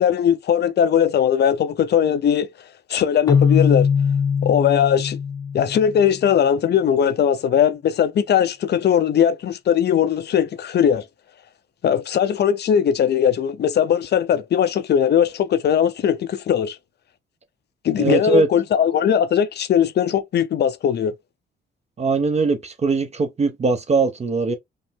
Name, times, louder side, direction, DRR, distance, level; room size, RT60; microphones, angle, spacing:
voice 1, 0.0-2.5 2.9-3.9 4.4-5.2 5.5-11.0 11.8-16.8 17.8-21.1, left 8 dB, 55° left, 0.7 m, -19 dB
Keyboard (musical), 3.3-6.2, left 6 dB, 20° left, 0.4 m, -21 dB
voice 2, 18.0-18.5 22.0-24.6, right 4 dB, 35° right, 0.8 m, -20 dB
5.3 x 2.1 x 3.5 m
cardioid pair, 90°, 20 cm